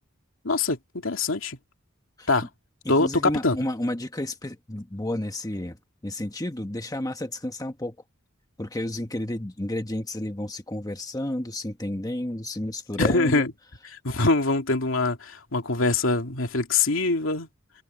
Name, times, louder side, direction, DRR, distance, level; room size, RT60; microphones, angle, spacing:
voice 1, 0.4-1.6 2.3-2.5 2.9-3.6 13.0-13.5 14.0-17.5, left 3 dB, 75° left, 2.6 m, -23 dB
voice 2, 2.8-5.8 6.0-7.9 8.6-13.4, left 1 dB, 20° left, 1.2 m, -31 dB
head